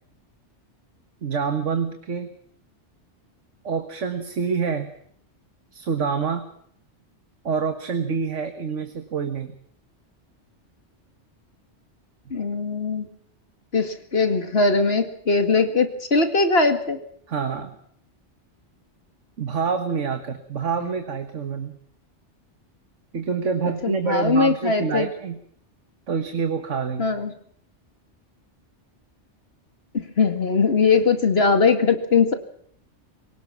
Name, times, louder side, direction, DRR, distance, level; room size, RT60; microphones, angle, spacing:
voice 1, 1.2-2.3 3.6-4.9 5.7-6.5 7.4-9.6 17.3-17.8 19.4-21.8 23.1-25.4 26.1-27.1, right 6 dB, 85° right, 7 dB, 1.8 m, -26 dB
voice 2, 12.3-13.1 13.7-17.0 20.8-20.9 23.8-25.1 27.0-27.3 29.9-32.3, left 4 dB, 55° left, 7 dB, 2.4 m, -20 dB
25.5 x 18.0 x 6.0 m, 0.65 s
omnidirectional pair, 1.2 m